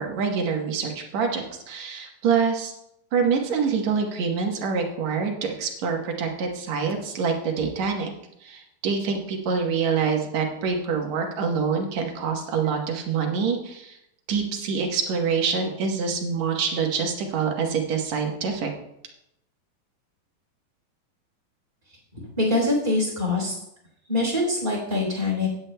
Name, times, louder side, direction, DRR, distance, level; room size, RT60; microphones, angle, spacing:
voice 1, 0.0-2.7 3.1-8.1 8.4-14.0 14.3-18.7, right 5 dB, 60° right, 2 dB, 2.1 m, -26 dB
voice 2, 22.4-23.5 24.1-25.5, left 2 dB, 15° right, -2 dB, 3.3 m, -24 dB
16.5 x 10.0 x 2.2 m, 0.81 s
omnidirectional pair, 4.2 m